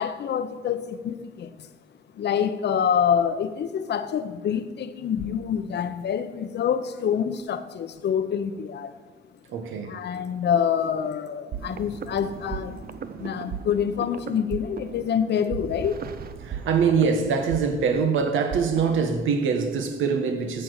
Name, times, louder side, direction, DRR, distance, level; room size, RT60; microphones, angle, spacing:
voice 1, 0.0-1.7 2.1-9.0 9.8-12.9 13.2-16.1, left 8 dB, 60° left, 0.9 m, -26 dB
voice 2, 9.5-9.9 16.4-20.6, right 5 dB, 80° right, 1.5 m, -24 dB
sound 1, 11.5-19.1, right 7 dB, 50° right, 0.7 m, -37 dB
13.0 x 4.6 x 8.1 m
cardioid pair, 90°, 20 cm